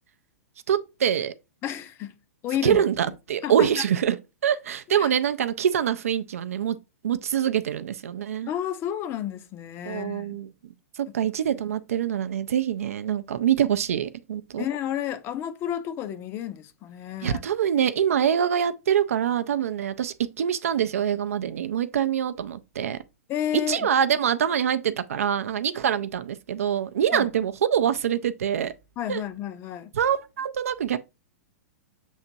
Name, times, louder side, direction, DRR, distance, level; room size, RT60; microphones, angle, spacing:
voice 1, 0.7-1.3 2.6-4.2 4.4-6.8 7.0-8.5 9.9-10.5 11.0-14.7 17.2-23.0 23.7-28.7 29.1-29.2 30.0-31.0, right 9 dB, 70° right, 0.4 m, -25 dB
voice 2, 1.6-2.2 2.4-2.8 3.4-3.7 4.9-5.1 8.5-10.4 14.6-17.4 23.3-23.9 27.1-27.3 29.0-29.9, left 11 dB, 30° left, 0.5 m, -31 dB
7.1 x 2.8 x 2.6 m
figure-of-eight pair, 105°, 8 cm